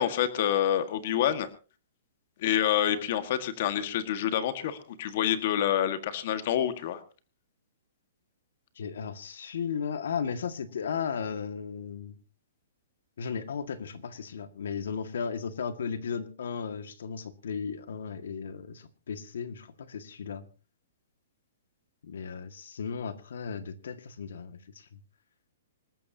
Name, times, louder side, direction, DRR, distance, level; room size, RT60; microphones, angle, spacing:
voice 1, 0.0-1.5 2.4-7.0, left 10 dB, 35° left, 10 dB, 1.6 m, -27 dB
voice 2, 8.7-12.2 13.2-20.4 22.0-24.9, left 6 dB, 70° left, 9 dB, 1.9 m, -35 dB
26.5 x 13.5 x 2.8 m, 0.34 s
hypercardioid pair, 180°, 0 cm